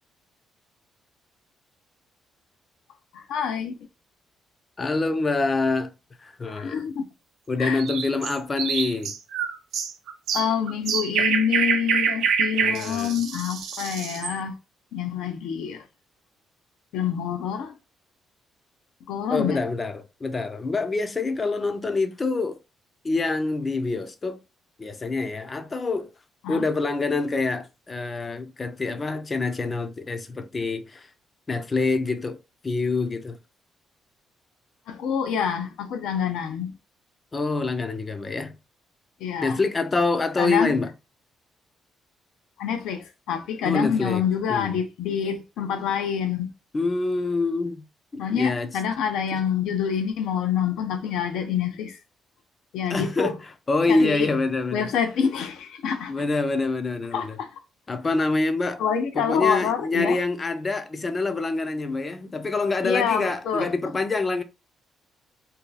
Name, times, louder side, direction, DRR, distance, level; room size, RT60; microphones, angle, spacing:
voice 1, 3.1-3.8 6.5-7.1 7.6-7.8 10.3-14.6 14.9-15.8 16.9-17.7 19.1-19.6 26.4-26.6 34.9-36.7 39.2-39.6 40.4-40.7 42.6-46.5 48.2-52.0 52.7-53.3 53.9-54.3 54.7-56.1 57.1-57.5 58.8-60.2 62.8-63.7, left 7 dB, 85° left, 0.7 m, -26 dB
voice 2, 4.8-5.9 6.2-6.8 7.5-9.1 12.6-13.1 19.3-22.6 23.0-24.4 24.8-26.1 26.5-31.1 31.5-32.4 32.6-33.4 37.3-38.5 39.4-40.9 43.6-44.2 44.5-44.8 46.7-47.8 48.1-48.7 49.3-49.4 52.9-53.4 53.7-54.9 56.1-57.4 57.9-58.8 59.1-64.4, left 3 dB, 30° left, 0.5 m, -26 dB
sound 1, 7.8-14.4, right 6 dB, 85° right, 0.5 m, -26 dB
2.7 x 2.3 x 3.9 m
cardioid pair, 90°, 0 cm